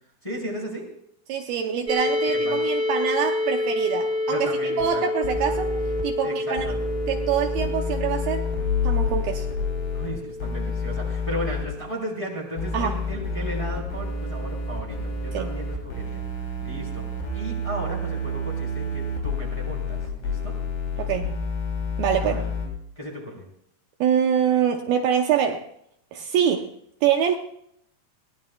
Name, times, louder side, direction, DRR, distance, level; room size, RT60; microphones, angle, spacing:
voice 1, 0.2-0.9 2.2-2.6 4.3-5.0 6.2-6.8 9.9-17.1 17.3-20.5 22.2-22.4 22.9-23.4, equal, 10° left, -2 dB, 3.1 m, -35 dB
voice 2, 1.3-4.5 4.8-5.7 6.0-6.6 7.1-8.4 8.8-9.5 12.7-13.0 15.3-15.5 21.0-21.3 22.0-22.4 24.0-25.7 26.1-26.7 27.0-27.4, right 8 dB, 75° right, 4 dB, 2.6 m, -24 dB
sound 1, 1.9-13.6, left 2 dB, 15° right, 1.8 m, -29 dB
sound 2, 4.8-4.9 5.2-6.0 6.6-10.1 10.4-11.6 12.6-22.7, left 3 dB, 75° left, 5.3 m, -29 dB
21.5 x 18.0 x 2.3 m, 0.70 s
omnidirectional pair, 4.7 m